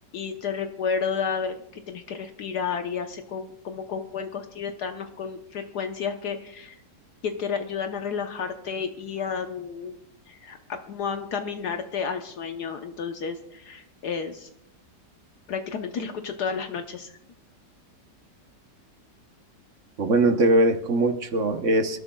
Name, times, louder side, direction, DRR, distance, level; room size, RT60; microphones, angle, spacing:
voice 1, 0.1-6.8 7.2-9.9 10.3-14.5 15.5-17.1, left 6 dB, 70° left, 5 dB, 1.4 m, -31 dB
voice 2, 20.0-22.0, right 2 dB, 50° right, 7 dB, 1.3 m, -21 dB
26.5 x 13.0 x 2.3 m, 0.78 s
omnidirectional pair, 1.8 m